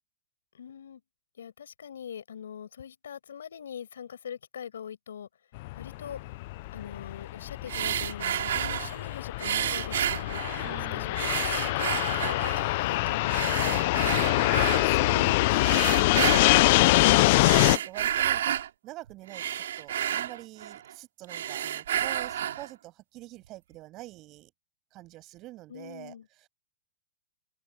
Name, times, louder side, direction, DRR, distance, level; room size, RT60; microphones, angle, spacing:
voice 1, 0.5-1.0 1.4-5.3 5.8-6.2 6.7-14.0 25.7-26.3, left 8 dB, 85° left, 6.1 m, -42 dB
Fixed-wing aircraft airplane, 5.6-17.8, left 20 dB, 50° left, 0.6 m, -24 dB
sound 1, 7.7-9.0 9.4-10.8 11.2-12.7 13.3-14.9 15.6-16.7 17.3-18.7 19.1-20.9 21.2-22.7, right 10 dB, 75° right, 6.3 m, -31 dB
voice 2, 10.6-11.3 14.5-18.6 18.8-24.5 24.9-26.1, right 18 dB, 35° right, 7.8 m, -46 dB
open air
hypercardioid pair, 135°, 0 cm